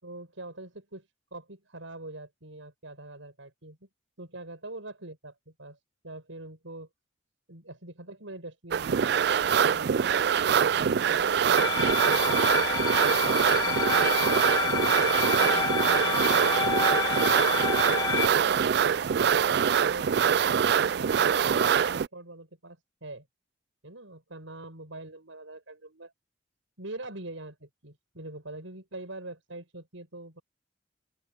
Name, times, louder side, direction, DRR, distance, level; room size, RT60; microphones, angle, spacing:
voice 1, 0.0-3.8 4.2-5.8 6.0-6.9 7.5-9.3 9.7-12.3 12.9-14.1 14.6-14.9 15.2-17.2 17.8-18.1 19.1-19.6 19.9-23.3 23.8-26.1 26.8-30.4, right 2 dB, 85° right, 6.6 m, -44 dB
sound 1, 8.7-22.1, right 7 dB, 55° right, 0.3 m, -24 dB
sound 2, 11.6-18.3, left 5 dB, 20° left, 1.8 m, -28 dB
open air
head